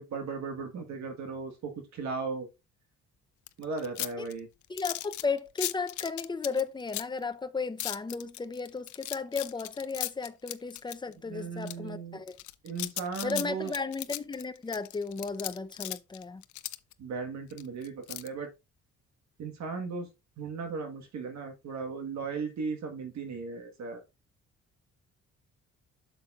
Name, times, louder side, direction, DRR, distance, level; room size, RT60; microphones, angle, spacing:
voice 1, 0.0-2.5 3.6-4.5 11.3-12.2 12.6-13.7 17.0-18.5 19.4-20.1 20.4-24.0, right 4 dB, 65° right, 1.5 m, -36 dB
sound 1, 3.5-7.2 7.8-11.1 11.6-11.7 12.3-16.9 17.5-18.3, left 16 dB, 75° left, 0.5 m, -37 dB
voice 2, 4.7-12.4 13.2-16.4, left 4 dB, 15° left, 0.6 m, -34 dB
7.9 x 6.9 x 2.4 m
cardioid pair, 90°, 30 cm